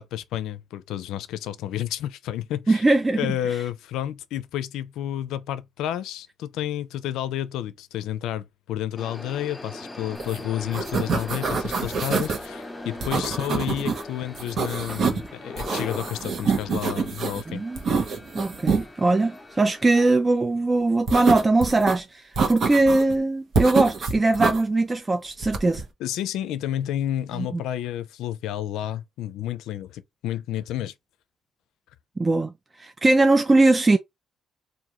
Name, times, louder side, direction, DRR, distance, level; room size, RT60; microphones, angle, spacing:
voice 1, 0.0-2.8 3.2-17.6 26.0-30.9, left 11 dB, 90° left, 0.4 m, -30 dB
voice 2, 2.7-3.6 17.5-17.8 18.3-25.8 27.4-27.6 32.2-34.0, right 2 dB, 25° right, 0.4 m, -21 dB
sound 1, 9.0-20.2, left 2 dB, 15° left, 0.8 m, -40 dB
sound 2, 10.2-10.4 10.6-12.4 13.0-14.0 14.3-15.3 15.6-17.4 17.8-18.8 21.1-21.9 22.4-23.1 23.5-24.6 25.4-25.8, right 5 dB, 60° right, 1.0 m, -26 dB
3.6 x 2.5 x 2.9 m
cardioid pair, 90°, 0 cm